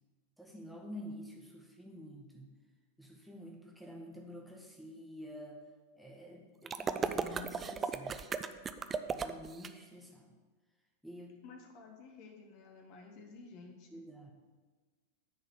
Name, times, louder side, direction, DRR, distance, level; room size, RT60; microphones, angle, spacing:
voice 1, 0.4-2.5 3.0-5.6 6.0-8.2 9.1-10.3 11.0-11.4 13.9-14.3, equal, ahead, -1 dB, 1.4 m, -49 dB
sound 1, 6.7-9.7, right 5 dB, 20° right, 0.4 m, -36 dB
voice 2, 11.4-14.0, left 4 dB, 45° left, 2 dB, 1.2 m, -53 dB
10.0 x 4.2 x 7.1 m, 1.4 s
figure-of-eight pair, 90°, 0 cm